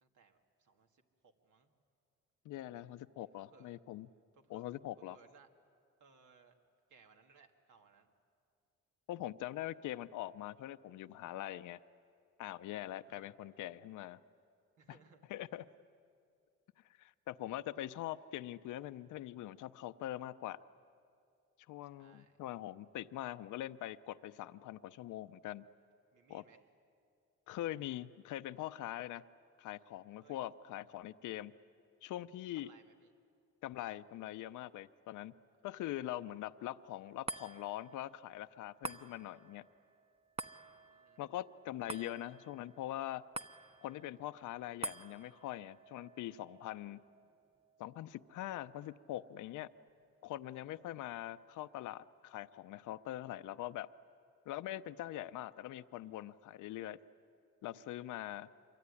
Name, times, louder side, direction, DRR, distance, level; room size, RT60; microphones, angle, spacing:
voice 1, 0.0-1.7 3.2-3.8 4.3-4.7 5.0-5.5 6.0-6.6 6.9-8.1 13.1-13.5 14.8-15.3 22.0-22.4 26.1-26.7 30.2-30.5 32.5-33.1 35.3-35.5 40.6-41.2 50.9-51.1, right 5 dB, 80° right, 4 dB, 2.3 m, -65 dB
voice 2, 2.4-4.1 4.5-5.2 9.1-11.8 12.4-14.2 15.3-15.7 17.0-20.6 21.7-25.6 26.3-26.4 27.5-29.2 29.6-31.5 32.0-32.7 33.6-35.3 35.6-39.7 41.2-43.3 43.8-47.0 47.8-49.7 50.2-53.9 54.5-57.0 57.6-58.5, left 14 dB, 80° left, 13 dB, 0.7 m, -43 dB
sound 1, 37.3-49.8 50.3-50.4, right 2 dB, 20° right, 0.9 m, -50 dB
26.0 x 23.0 x 9.9 m, 2.4 s
cardioid pair, 90°, 30 cm